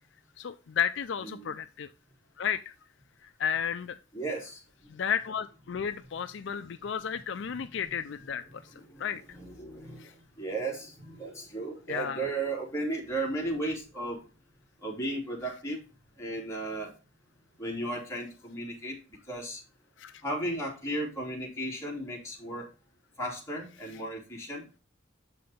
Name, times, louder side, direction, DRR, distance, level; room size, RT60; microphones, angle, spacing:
voice 1, 0.4-1.9 2.4-2.7 3.2-4.0 4.9-8.6 9.0-9.4 10.0-10.1 11.9-12.3 20.0-20.2, left 8 dB, 65° left, 11 dB, 0.4 m, -33 dB
voice 2, 1.2-1.5 4.1-4.9 7.7-8.0 8.5-14.3 14.8-15.8 16.2-16.9 17.6-19.6 20.2-22.7 23.2-24.7, right 2 dB, 15° left, -3 dB, 2.9 m, -35 dB
7.7 x 5.7 x 3.5 m, 0.32 s
head